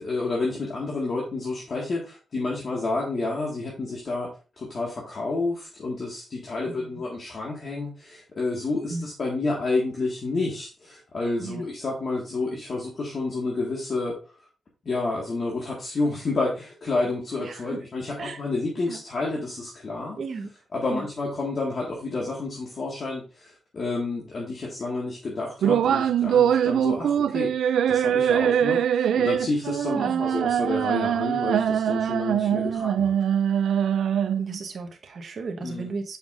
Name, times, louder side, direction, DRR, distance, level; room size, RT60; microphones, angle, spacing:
voice 1, 0.0-4.3 4.6-14.1 14.8-20.2 20.7-33.2 35.6-35.9, left 3 dB, 45° left, -3 dB, 1.7 m, -30 dB
voice 2, 17.4-17.7 18.2-18.4 18.9-19.0 20.2-20.5 20.9-21.1 29.9-30.2 32.7-32.9 34.4-36.2, right 4 dB, 55° right, 3 dB, 1.1 m, -35 dB
sound 1, 25.6-34.6, right 9 dB, 90° right, 0.3 m, -23 dB
7.0 x 5.4 x 2.5 m, 0.34 s
cardioid pair, 115°, 0 cm